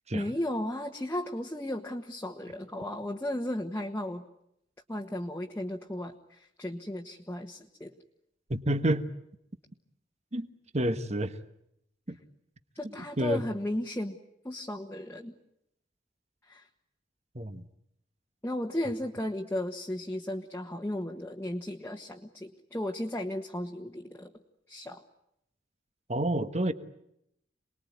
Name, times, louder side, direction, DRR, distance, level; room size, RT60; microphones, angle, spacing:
voice 1, 0.1-4.2 4.9-7.9 12.7-14.2 14.4-15.3 16.4-16.7 18.4-24.3 24.7-25.0, left 1 dB, 15° left, 1 dB, 1.5 m, -35 dB
voice 2, 8.5-9.1 10.3-10.5 10.7-11.4 12.1-12.2 13.2-13.4 17.3-17.7 26.1-26.7, right 1 dB, 40° right, 11 dB, 1.4 m, -29 dB
28.5 x 20.5 x 9.5 m, 0.79 s
head